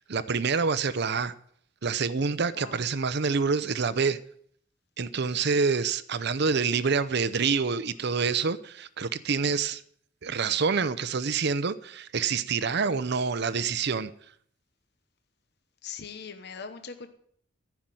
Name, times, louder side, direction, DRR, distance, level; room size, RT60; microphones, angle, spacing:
voice 1, 0.1-1.3 1.8-4.2 5.0-9.8 10.2-14.1, right 5 dB, 60° right, 0.7 m, -27 dB
voice 2, 15.8-17.1, left 6 dB, 60° left, 1.0 m, -41 dB
14.5 x 6.0 x 9.1 m
head